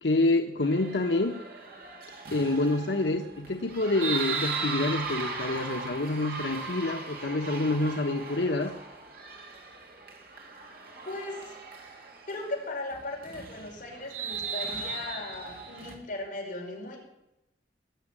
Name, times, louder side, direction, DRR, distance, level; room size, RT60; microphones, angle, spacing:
voice 1, 0.0-1.4 2.3-8.7, left 2 dB, 90° left, 4 dB, 1.0 m, -27 dB
sound 1, 0.6-16.0, right 4 dB, 60° right, 2.6 m, -38 dB
voice 2, 11.1-11.6 12.3-17.0, left 2 dB, 45° left, -2 dB, 5.2 m, -37 dB
19.5 x 7.3 x 8.9 m, 0.91 s
head